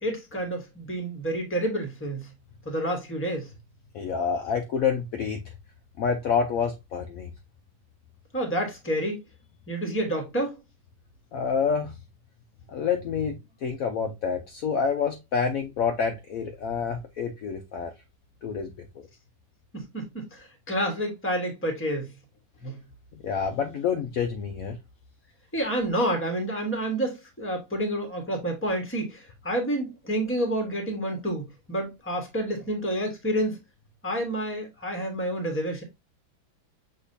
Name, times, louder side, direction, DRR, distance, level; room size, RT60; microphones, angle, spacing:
voice 1, 0.0-2.3 2.6-3.5 8.3-9.2 9.7-10.6 19.7-22.1 22.6-22.8 25.5-33.6 34.0-35.8, right 1 dB, 10° left, 0.8 m, -29 dB
voice 2, 3.9-5.4 6.0-7.3 11.3-11.9 12.7-17.9 18.4-19.1 23.2-24.8, left 6 dB, 80° left, 0.7 m, -28 dB
6.4 x 2.9 x 2.6 m
omnidirectional pair, 2.1 m